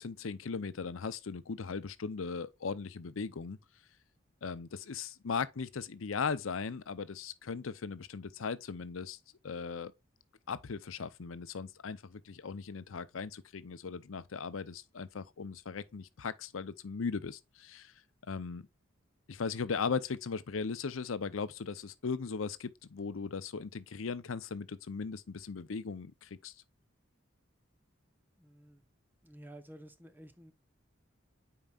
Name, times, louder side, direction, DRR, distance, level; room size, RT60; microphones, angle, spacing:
voice 1, 0.0-3.6 4.4-9.2 9.4-9.9 10.5-17.9 18.2-18.7 19.3-26.5, left 5 dB, 80° left, 0.6 m, -38 dB
voice 2, 28.4-28.8 29.2-30.5, right 1 dB, 10° right, 0.9 m, -52 dB
8.9 x 4.7 x 2.4 m
head